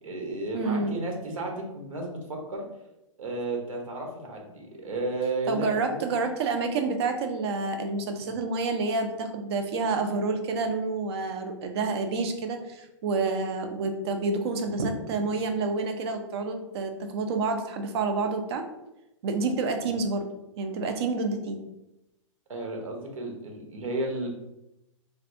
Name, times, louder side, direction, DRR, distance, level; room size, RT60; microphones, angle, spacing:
voice 1, 0.0-2.6 3.2-6.1 22.5-24.3, right 2 dB, 90° right, 1 dB, 1.0 m, -33 dB
voice 2, 0.5-1.0 5.5-18.7 19.2-20.3 20.6-21.6, right 3 dB, 50° right, 6 dB, 0.5 m, -28 dB
3.3 x 2.6 x 2.5 m, 0.91 s
hypercardioid pair, 145°, 17 cm